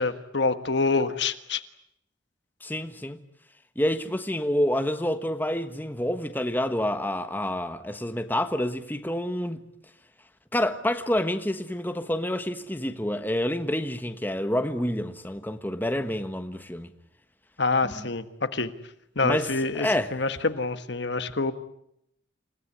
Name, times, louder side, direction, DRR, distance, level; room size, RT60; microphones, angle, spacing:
voice 1, 0.0-1.6 17.6-18.2 18.5-18.7 19.1-21.5, left 3 dB, 60° left, 1.5 m, -26 dB
voice 2, 2.6-3.2 3.8-9.6 10.5-16.9 18.6-18.7 19.2-19.5 19.8-20.1, left 1 dB, 10° left, 1.3 m, -28 dB
28.5 x 17.0 x 9.9 m
head